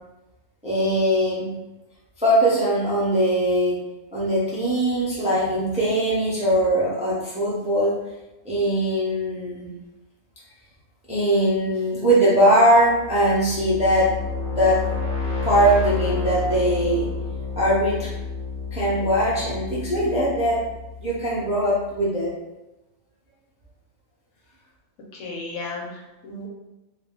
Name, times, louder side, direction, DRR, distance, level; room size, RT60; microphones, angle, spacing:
voice 1, 0.6-1.5 2.2-3.8 4.1-8.0 8.4-9.7 11.1-14.1 14.4-14.8 15.4-17.1 17.6-18.1 18.7-20.6 21.0-22.3, right 1 dB, 10° right, -8 dB, 0.4 m, -21 dB
sound 1, 12.8-21.6, left 4 dB, 30° left, 0.8 m, -30 dB
voice 2, 25.1-26.5, left 2 dB, 70° left, -2 dB, 1.1 m, -34 dB
2.5 x 2.3 x 3.7 m, 1.0 s
omnidirectional pair, 1.6 m